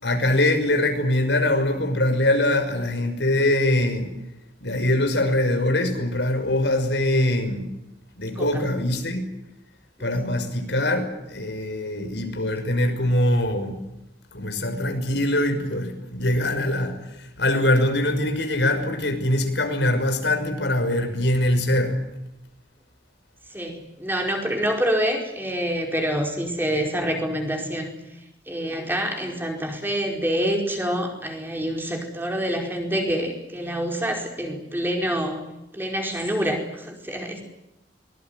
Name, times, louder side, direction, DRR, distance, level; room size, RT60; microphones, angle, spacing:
voice 1, 0.0-4.1 4.6-7.7 8.2-9.3 10.0-13.8 14.3-22.0, left 1 dB, 85° left, 6 dB, 5.9 m, -23 dB
voice 2, 10.0-10.4 23.5-27.9 28.5-35.4 35.7-37.4, equal, 10° right, 2 dB, 4.8 m, -27 dB
23.5 x 21.0 x 9.4 m, 0.89 s
head